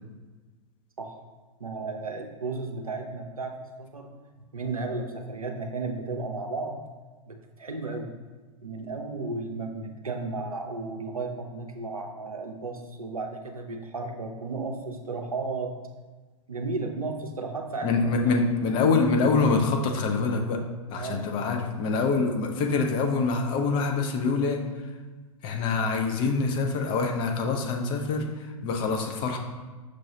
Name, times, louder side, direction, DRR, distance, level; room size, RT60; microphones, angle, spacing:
voice 1, 1.6-4.1 4.4-6.8 7.3-8.1 8.6-15.8 16.5-18.4 18.7-18.9 20.9-21.3, right 3 dB, 85° right, 3 dB, 0.5 m, -34 dB
voice 2, 17.8-20.6 20.9-24.9 25.4-29.4, left 4 dB, 25° left, 3 dB, 0.4 m, -25 dB
6.0 x 2.3 x 2.8 m, 1.3 s
figure-of-eight pair, 100°, 18 cm